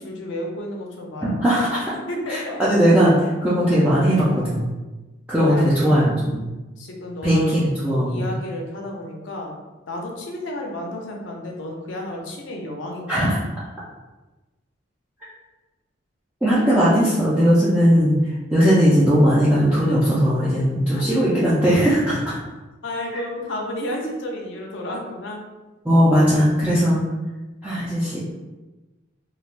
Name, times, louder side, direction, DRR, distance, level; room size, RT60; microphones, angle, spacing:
voice 1, 0.0-1.6 2.1-2.6 5.3-6.2 6.8-7.5 8.0-9.6 9.9-13.1 20.9-21.0 22.8-25.4, left 1 dB, 65° left, 0 dB, 0.6 m, -32 dB
voice 2, 1.2-1.9 2.3-4.7 5.3-6.5 7.2-8.3 13.1-13.4 16.4-22.4 25.8-27.0 27.6-28.2, equal, 5° right, -11 dB, 0.4 m, -18 dB
3.2 x 2.2 x 2.5 m, 1.1 s
head